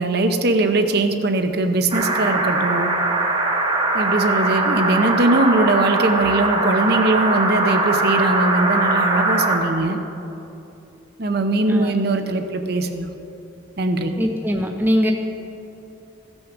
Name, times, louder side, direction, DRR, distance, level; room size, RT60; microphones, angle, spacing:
voice 1, 0.0-2.9 3.9-10.0 11.2-13.1 13.8-14.2, right 2 dB, 50° right, 6 dB, 0.7 m, -20 dB
sound 1, 1.9-9.6, right 2 dB, 25° right, 1.2 m, -21 dB
voice 2, 14.2-15.1, equal, 10° right, 2 dB, 0.5 m, -21 dB
15.0 x 6.2 x 6.1 m, 2.8 s
head